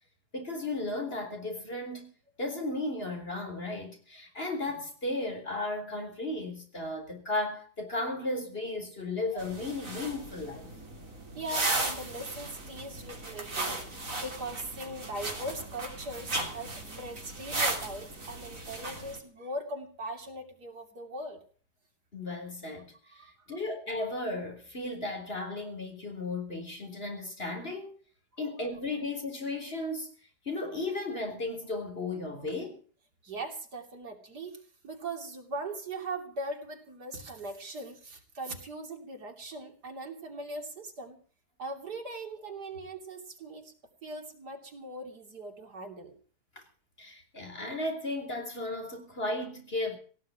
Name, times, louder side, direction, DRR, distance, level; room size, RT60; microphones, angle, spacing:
voice 1, 0.3-2.1 2.4-10.7 22.1-27.9 28.4-30.1 30.4-32.8 47.0-50.0, left 2 dB, 35° left, 4.1 m, -35 dB
sound 1, 9.4-19.2, right 2 dB, 55° right, 3.6 m, -36 dB
voice 2, 11.4-13.8 14.2-21.4 23.1-23.6 33.2-41.2 41.6-43.7 44.0-46.2, right 1 dB, 85° right, 3.6 m, -40 dB
17.5 x 7.5 x 9.7 m
omnidirectional pair, 1.7 m